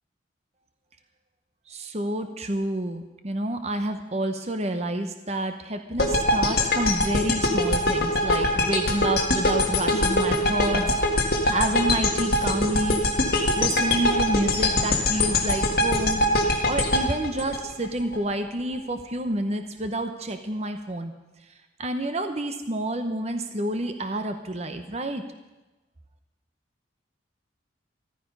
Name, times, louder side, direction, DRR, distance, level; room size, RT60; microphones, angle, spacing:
voice 1, 1.7-10.9 11.1-13.0 13.6-16.2 16.7-21.1 21.8-25.2, right 1 dB, 35° right, 7 dB, 0.9 m, -29 dB
sound 1, 6.0-18.2, left 1 dB, 50° left, 1.8 m, -23 dB
14.5 x 13.5 x 5.4 m, 1.1 s
head